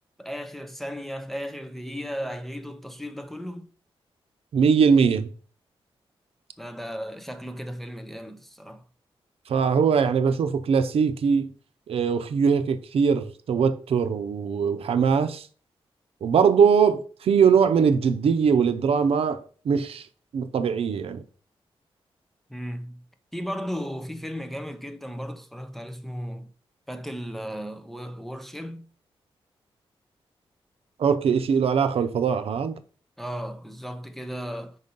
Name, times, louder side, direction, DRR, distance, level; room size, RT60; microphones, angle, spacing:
voice 1, 0.2-3.7 6.6-8.8 22.5-23.0 23.3-26.5 26.9-28.9 33.2-34.8, equal, ahead, 0.5 m, -35 dB
voice 2, 4.5-5.3 9.5-11.5 11.9-15.5 16.2-20.1 20.3-21.2 31.0-32.8, right 6 dB, 80° right, 0.6 m, -21 dB
5.3 x 4.0 x 5.3 m
wide cardioid pair, 155°, 10 cm